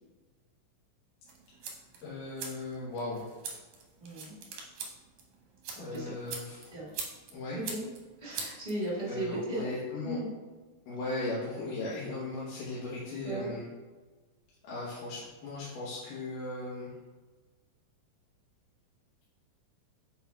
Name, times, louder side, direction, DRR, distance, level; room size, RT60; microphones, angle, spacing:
sound 1, 1.3-9.2, right 5 dB, 70° right, 1.9 m, -44 dB
voice 1, 2.0-3.2 5.8-6.7 7.3-7.6 9.1-10.2 10.9-13.6 14.6-16.9, left 2 dB, 70° left, -7 dB, 2.5 m, -37 dB
voice 2, 4.0-4.4 5.7-6.1 6.7-6.9 7.5-7.9 8.2-9.7 10.0-10.3 13.2-13.5, right 1 dB, 30° right, -7 dB, 0.8 m, -36 dB
7.5 x 5.6 x 2.3 m, 1.3 s
omnidirectional pair, 4.2 m